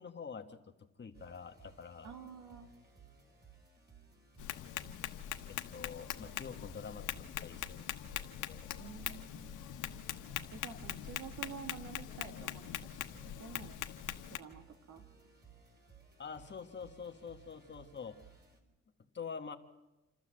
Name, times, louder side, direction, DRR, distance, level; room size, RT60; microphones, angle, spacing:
voice 1, 0.0-2.1 5.5-7.9 8.4-8.7 9.1-9.2 16.2-18.2 19.1-19.6, left 6 dB, 35° left, 5 dB, 1.5 m, -46 dB
sound 1, 1.1-18.6, right 5 dB, 35° right, 3.9 m, -60 dB
voice 2, 2.0-2.7 8.8-9.6 10.5-12.9 13.4-13.8 14.3-15.0, right 6 dB, 75° right, 6 dB, 2.5 m, -49 dB
Tap, 4.4-14.4, left 12 dB, 90° left, 1.3 m, -42 dB
sound 2, 8.7-14.3, equal, 60° right, 3.2 m, -63 dB
28.0 x 12.5 x 7.6 m, 1.0 s
cardioid pair, 90°, 30 cm